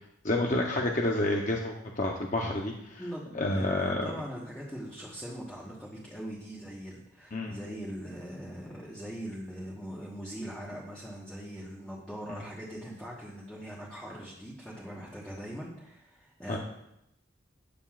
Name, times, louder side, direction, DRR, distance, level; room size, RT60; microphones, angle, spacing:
voice 1, 0.2-3.0 3.3-4.1 7.3-7.6 12.3-12.4 16.5-16.6, left 2 dB, 40° left, 0 dB, 0.8 m, -29 dB
voice 2, 3.0-16.6, equal, 5° left, -5 dB, 1.2 m, -41 dB
13.0 x 9.2 x 2.5 m, 0.83 s
head